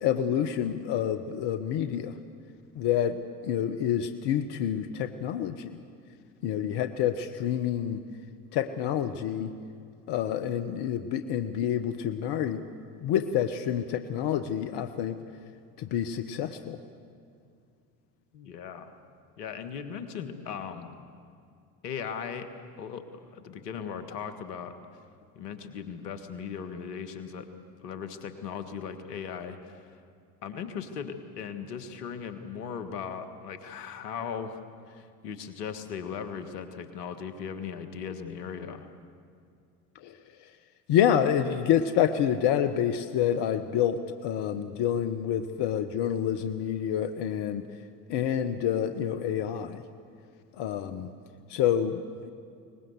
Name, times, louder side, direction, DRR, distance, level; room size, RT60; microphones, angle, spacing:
voice 1, 0.0-2.1 2.7-5.8 6.4-8.0 8.5-9.5 10.1-12.6 13.0-15.2 15.8-16.8 39.9-40.5 40.9-47.7 48.1-49.8 50.5-51.1 51.5-52.3, left 9 dB, 60° left, 10 dB, 1.2 m, -28 dB
voice 2, 18.3-18.9 19.4-20.9 21.8-22.5 22.8-24.8 25.4-27.5 27.8-30.0 30.4-38.9, left 7 dB, 80° left, 9 dB, 1.8 m, -38 dB
23.0 x 20.0 x 8.1 m, 2.4 s
hypercardioid pair, 65°, 46 cm